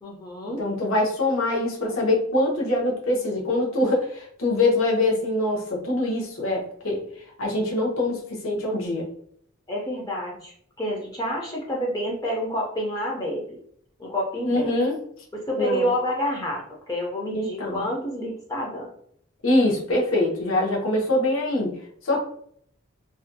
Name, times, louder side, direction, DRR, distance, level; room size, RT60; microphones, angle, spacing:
voice 1, 0.0-0.6 9.7-13.6 14.0-14.7 15.3-18.9, equal, 20° left, -2 dB, 0.4 m, -28 dB
voice 2, 0.6-7.0 7.4-9.1 14.4-15.0 15.6-15.9 17.3-17.9 19.4-21.8 22.0-22.2, left 2 dB, 80° left, -2 dB, 0.8 m, -24 dB
2.4 x 2.2 x 2.5 m, 0.65 s
head